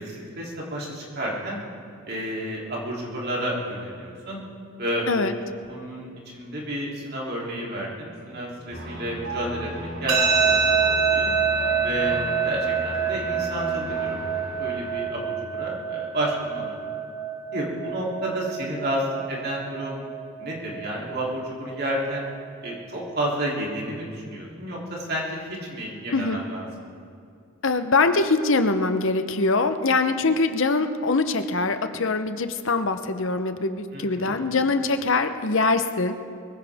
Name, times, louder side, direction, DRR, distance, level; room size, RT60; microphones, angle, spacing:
voice 1, 0.0-1.6 2.1-4.4 4.8-5.1 5.7-10.2 10.4-11.3 11.8-12.2 12.4-14.2 14.6-16.9 17.5-20.0 20.4-22.3 22.6-26.7 33.9-34.4, right 1 dB, 45° right, -4 dB, 3.2 m, -31 dB
sound 1, 8.7-15.0, right 1 dB, 65° right, 4.1 m, -36 dB
sound 2, 10.1-23.1, right 6 dB, 85° right, 1.4 m, -27 dB
voice 2, 26.1-26.4 27.6-36.1, left 3 dB, 65° left, 9 dB, 0.8 m, -23 dB
23.0 x 16.0 x 3.6 m, 2.4 s
head